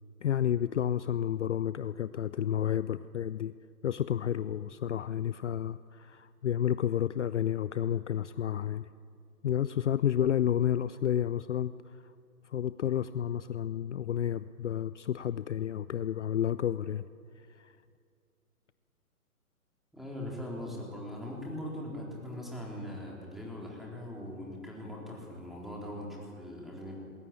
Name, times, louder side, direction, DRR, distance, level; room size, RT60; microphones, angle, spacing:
voice 1, 0.2-3.5 3.8-8.9 9.4-12.0 12.4-17.1 17.4-17.8, left 10 dB, 55° left, 15 dB, 0.6 m, -31 dB
voice 2, 19.9-27.0, left 1 dB, ahead, -3 dB, 3.8 m, -41 dB
20.5 x 17.5 x 8.7 m, 2.3 s
figure-of-eight pair, 135°, 44 cm